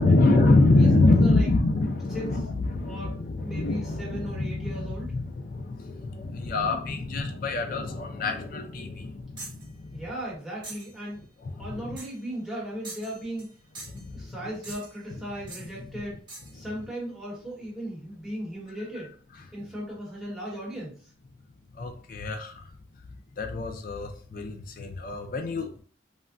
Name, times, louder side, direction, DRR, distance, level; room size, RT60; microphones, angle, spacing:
voice 1, 0.0-10.0 11.4-12.0 13.9-14.4 21.7-22.6 23.4-25.8, left 2 dB, 50° left, 4 dB, 0.4 m, -25 dB
voice 2, 0.7-1.5 2.1-2.2 2.8-3.1 3.4-5.1 9.9-11.2 11.6-13.5 14.1-16.2 16.5-19.1 19.5-21.1, right 1 dB, ahead, -7 dB, 1.1 m, -37 dB
sound 1, 9.4-9.7 10.6-11.0 12.0-12.2 12.8-13.5 13.8-14.1 14.6-15.0 15.5-15.7 16.3-16.6, right 2 dB, 25° right, 1.1 m, -43 dB
3.4 x 2.1 x 2.5 m, 0.43 s
head